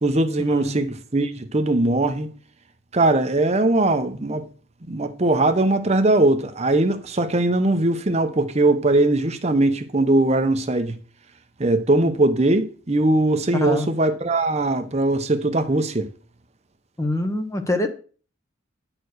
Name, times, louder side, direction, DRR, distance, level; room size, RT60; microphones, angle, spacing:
voice 1, 0.0-2.3 2.9-4.4 4.9-10.9 11.6-16.1, right 2 dB, 35° right, 0.8 m, -20 dB
voice 2, 13.5-13.9 17.0-17.9, left 1 dB, 15° left, 0.9 m, -24 dB
9.8 x 4.6 x 6.4 m
head